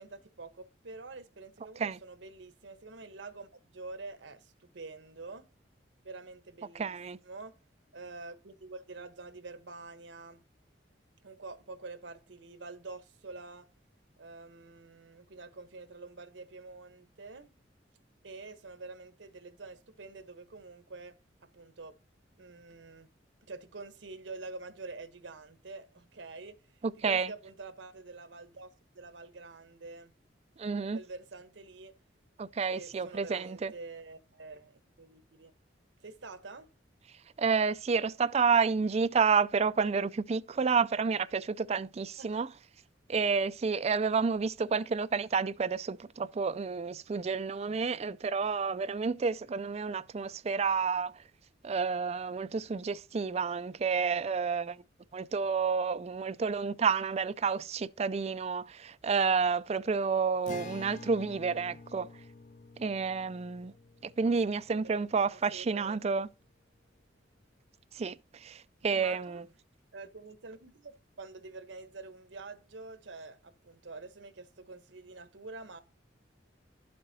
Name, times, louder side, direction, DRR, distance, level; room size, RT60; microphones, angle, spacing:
voice 1, 0.0-5.4 6.0-6.9 7.2-7.5 7.9-10.4 11.2-13.7 14.2-17.6 18.2-21.2 21.5-21.9 22.4-23.1 23.4-26.6 27.0-30.1 30.9-31.9 32.7-35.5 36.0-36.7 42.2-42.4 64.2-64.3 64.8-66.2 68.9-69.4 69.9-75.8, right 3 dB, 80° right, 1.0 m, -47 dB
voice 2, 6.7-7.2 27.0-27.3 30.6-31.0 32.4-33.7 37.4-42.5 43.1-51.2 51.6-54.8 55.1-62.1 62.8-63.7 64.0-66.3 67.9-69.4, right 5 dB, 35° right, 0.4 m, -30 dB
Acoustic guitar, 60.5-65.9, left 3 dB, 45° left, 0.4 m, -49 dB
11.0 x 7.7 x 2.7 m
head